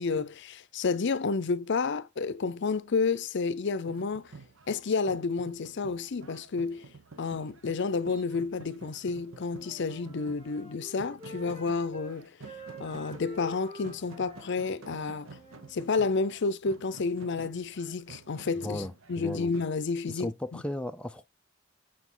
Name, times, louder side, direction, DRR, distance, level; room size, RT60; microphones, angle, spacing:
voice 1, 0.0-4.4 4.7-6.9 7.2-15.4 15.7-20.6, left 4 dB, 60° left, 0.6 m, -30 dB
sound 1, 3.9-19.6, right 3 dB, 80° right, 0.9 m, -50 dB
Wind instrument woodwind instrument, 9.3-12.2 12.4-15.7, equal, 35° right, 2.5 m, -48 dB
voice 2, 20.1-21.3, left 1 dB, 5° left, 0.4 m, -35 dB
8.2 x 4.6 x 3.8 m
head